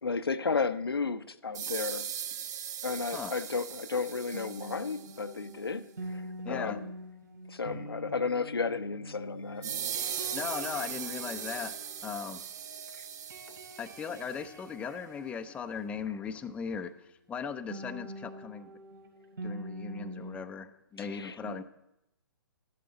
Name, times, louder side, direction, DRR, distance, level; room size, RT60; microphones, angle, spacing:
voice 1, 0.0-2.1 2.8-6.9 7.5-9.7 12.9-13.0 21.0-21.6, left 4 dB, 80° left, 11 dB, 0.7 m, -33 dB
sound 1, 1.5-5.3 9.6-14.4, right 9 dB, 45° right, 1.0 m, -39 dB
sound 2, 4.3-12.8 13.1-16.5 17.7-20.4, equal, 60° right, 3.2 m, -45 dB
voice 2, 6.4-6.8 10.3-12.4 13.8-16.9 17.3-18.7 19.4-21.6, left 6 dB, 10° left, 8 dB, 0.6 m, -38 dB
sound 3, 9.3-15.9, right 3 dB, 85° right, 3.7 m, -57 dB
12.5 x 11.0 x 4.0 m, 0.85 s
figure-of-eight pair, 125°, 12 cm